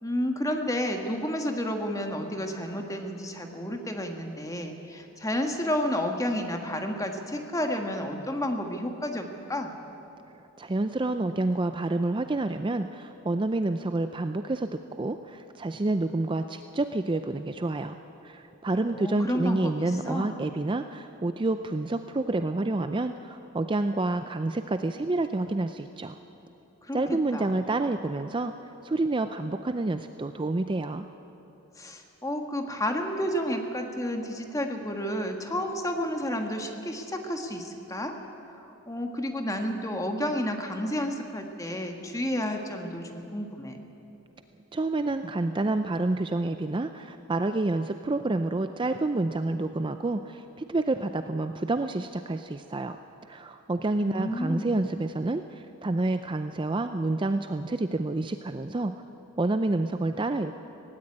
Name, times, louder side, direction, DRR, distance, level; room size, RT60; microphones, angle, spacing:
voice 1, 0.0-9.7 18.9-20.4 26.9-27.5 31.8-38.1 38.5-43.8 54.0-54.9, equal, 15° left, 4 dB, 1.5 m, -31 dB
voice 2, 10.6-18.0 18.2-26.2 26.9-28.5 28.8-31.0 44.7-53.0 53.3-58.9 59.4-60.5, right 2 dB, 20° right, 9 dB, 0.4 m, -28 dB
17.5 x 16.5 x 9.8 m, 3.0 s
head